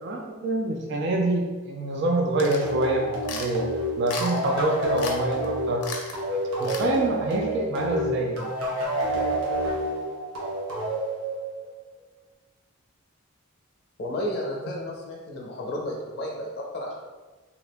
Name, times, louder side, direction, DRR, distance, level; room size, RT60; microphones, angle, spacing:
voice 1, 0.0-3.7 4.0-5.8 6.6-8.4, right 1 dB, 50° right, 1 dB, 0.3 m, -26 dB
sound 1, 2.4-2.7 3.2-3.5 4.1-4.5 5.0-5.2 5.4-5.5 5.8-6.2 6.6-6.9, left 4 dB, 85° left, 0.5 m, -35 dB
sound 2, 2.6-11.8, right 1 dB, 90° right, 0.9 m, -29 dB
voice 2, 14.0-16.9, left 1 dB, 45° left, -2 dB, 0.6 m, -32 dB
2.8 x 2.4 x 3.4 m, 1.3 s
head